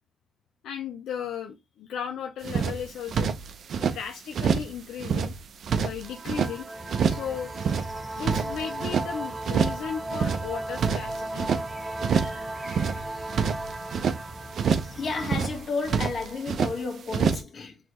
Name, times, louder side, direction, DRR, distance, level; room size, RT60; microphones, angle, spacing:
voice 1, 0.6-3.3 3.8-5.3 5.7-6.7 7.1-7.5 8.1-11.5, left 8 dB, 80° left, 0.5 m, -35 dB
sound 1, 2.4-4.0 4.3-4.7 5.0-6.5 6.9-7.3 7.5-9.1 9.4-9.8 10.1-11.6 12.0-12.4 12.7-14.2 14.5-15.0 15.2-16.7 17.1-17.4, right 6 dB, 60° right, 0.6 m, -26 dB
sound 2, 6.0-16.4, right 2 dB, 15° right, 0.5 m, -37 dB
sound 3, 6.7-15.4, right 1 dB, ahead, 1.7 m, -45 dB
voice 2, 14.7-17.8, left 4 dB, 50° left, 1.6 m, -32 dB
4.1 x 3.2 x 3.1 m
cardioid pair, 90°, 0 cm